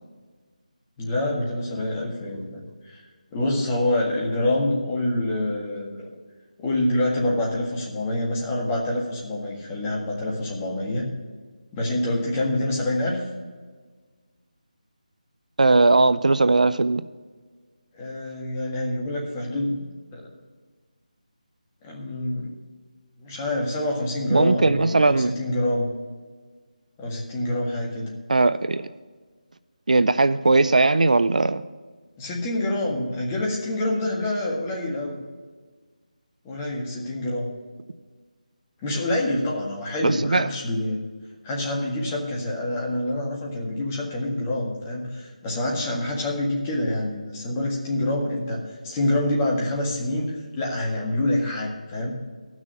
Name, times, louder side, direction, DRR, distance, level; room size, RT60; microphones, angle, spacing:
voice 1, 1.0-3.0 3.3-6.1 6.6-11.1 11.7-13.2 17.9-19.8 20.1-20.3 21.8-22.5 23.2-25.9 27.0-28.1 32.2-35.2 36.4-37.5 38.8-41.0 41.4-52.2, left 1 dB, 15° left, -2 dB, 1.7 m, -26 dB
voice 2, 15.6-17.0 24.3-25.3 28.3-28.9 29.9-31.6 40.0-40.5, right 3 dB, 70° right, 15 dB, 0.5 m, -19 dB
12.0 x 6.2 x 7.2 m, 1.4 s
figure-of-eight pair, 165°, 4 cm